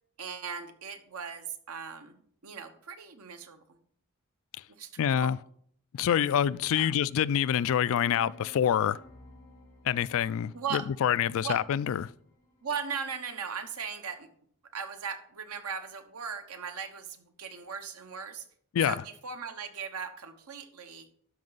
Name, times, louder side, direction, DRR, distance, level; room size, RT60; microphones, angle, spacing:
voice 1, 0.2-3.8 4.8-4.9 5.2-5.3 6.7-6.9 10.5-10.9 11.4-11.6 12.6-14.3 14.7-18.5 18.9-21.1, right 6 dB, 80° right, 1.1 m, -38 dB
voice 2, 5.0-5.4 5.9-9.0 9.8-12.1 18.7-18.9, left 9 dB, 65° left, 0.3 m, -26 dB
sound 1, 7.8-12.8, left 1 dB, 15° left, 2.9 m, -55 dB
12.5 x 5.3 x 4.0 m
head